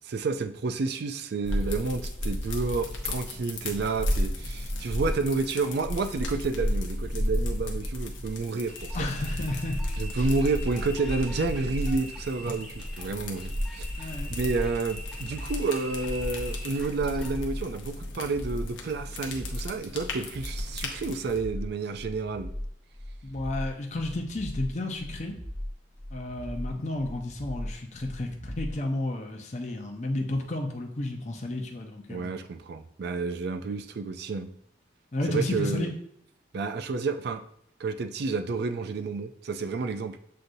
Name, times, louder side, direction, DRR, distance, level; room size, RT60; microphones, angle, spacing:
voice 1, 0.0-9.1 10.0-22.5 32.1-34.5 35.3-35.9 36.5-37.4 37.8-40.2, right 3 dB, 55° right, 8 dB, 0.4 m, -30 dB
sound 1, 1.4-21.4, left 1 dB, 80° left, 0.8 m, -33 dB
sound 2, 8.7-17.4, left 1 dB, ahead, 0.8 m, -44 dB
voice 2, 8.9-9.8 10.2-10.3 14.0-14.3 23.2-25.4 26.1-32.3 35.1-35.9, left 1 dB, 40° left, 2 dB, 0.6 m, -32 dB
sound 3, 14.9-28.8, equal, 30° right, 1.0 m, -38 dB
7.5 x 2.6 x 2.6 m, 0.70 s
head